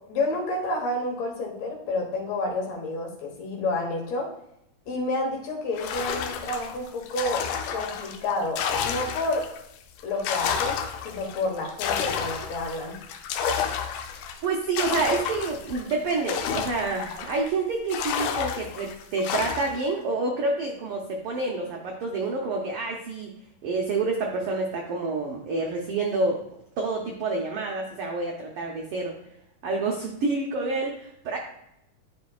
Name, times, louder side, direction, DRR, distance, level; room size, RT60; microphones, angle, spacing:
voice 1, 0.1-4.3 4.9-7.4 7.7-9.5 10.0-10.8 11.0-13.0, left 2 dB, 65° left, 0 dB, 2.4 m, -29 dB
sound 1, 5.8-9.6 10.0-17.5 17.9-19.9, left 7 dB, 80° left, 2.1 m, -31 dB
voice 2, 14.4-23.3 23.6-26.4 26.8-29.2 29.6-31.4, right 3 dB, 75° right, 0 dB, 1.3 m, -28 dB
11.0 x 5.2 x 2.4 m, 0.78 s
omnidirectional pair, 3.6 m